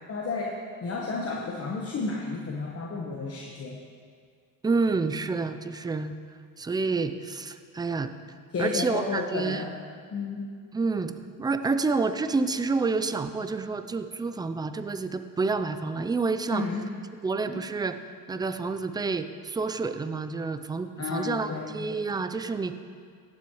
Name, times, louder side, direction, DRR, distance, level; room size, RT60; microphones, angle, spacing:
voice 1, 0.1-3.8 8.5-9.8 10.1-10.5 16.5-16.9 17.4-17.6 21.0-21.9, left 3 dB, 30° left, -1 dB, 1.1 m, -32 dB
voice 2, 4.6-6.2 6.6-8.1 8.6-9.6 10.7-11.1 11.4-16.6 17.2-18.0 18.3-22.7, right 4 dB, 10° right, 9 dB, 0.4 m, -28 dB
17.0 x 7.5 x 3.1 m, 2.1 s
supercardioid pair, 90°, 45 cm